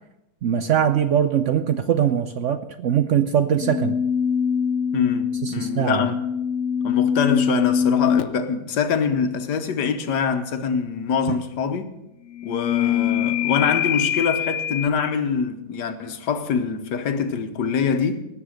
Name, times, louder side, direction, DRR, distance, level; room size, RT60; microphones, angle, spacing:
voice 1, 0.4-4.0 5.4-6.0 11.3-11.4, right 9 dB, 65° right, 0.7 m, -21 dB
sound 1, 3.6-8.4 12.3-14.9, left 8 dB, 70° left, 0.7 m, -23 dB
voice 2, 4.9-6.2 6.8-11.9 12.4-18.2, left 6 dB, 90° left, 1.6 m, -24 dB
18.5 x 6.8 x 6.4 m
omnidirectional pair, 1.8 m